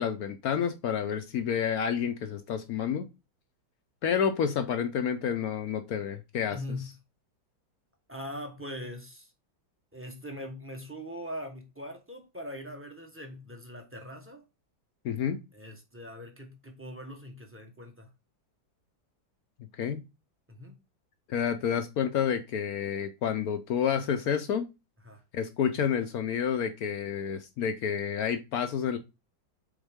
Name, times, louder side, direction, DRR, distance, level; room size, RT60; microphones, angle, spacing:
voice 1, 0.0-3.1 4.0-6.6 15.0-15.4 19.8-20.0 21.3-24.7 25.3-29.0, left 8 dB, 70° left, 0.9 m, -29 dB
voice 2, 6.5-7.0 8.1-9.3 9.9-14.5 15.5-18.1 20.5-20.7 25.0-25.2, left 1 dB, 10° right, 0.8 m, -41 dB
7.1 x 4.0 x 3.5 m
omnidirectional pair, 2.1 m